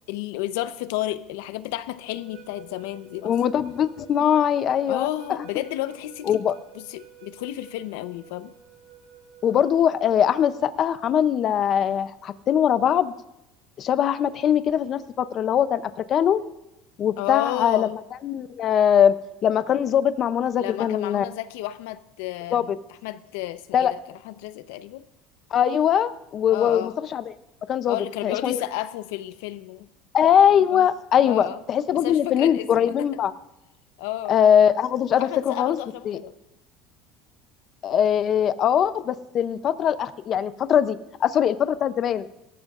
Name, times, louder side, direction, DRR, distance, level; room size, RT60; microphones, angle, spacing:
voice 1, 0.1-3.3 4.9-6.4 6.7-8.6 17.2-17.9 20.6-22.7 23.0-25.0 26.5-26.9 27.9-29.9 30.7-30.9 31.2-31.6 31.9-33.1 34.0-34.4 35.2-36.3, left 15 dB, 85° left, 0.7 m, -32 dB
sound 1, 2.0-9.8, right 9 dB, 60° right, 4.4 m, -50 dB
voice 2, 3.2-5.4 6.3-6.5 9.4-13.1 13.8-15.8 16.1-16.4 17.0-19.1 19.4-21.2 22.5-22.6 23.7-23.9 25.5-27.2 27.7-28.0 28.2-28.6 30.1-33.3 34.3-35.8 36.1-36.2 37.8-42.2, left 9 dB, 30° left, 0.5 m, -21 dB
23.5 x 14.0 x 2.4 m
cardioid pair, 175°, 0 cm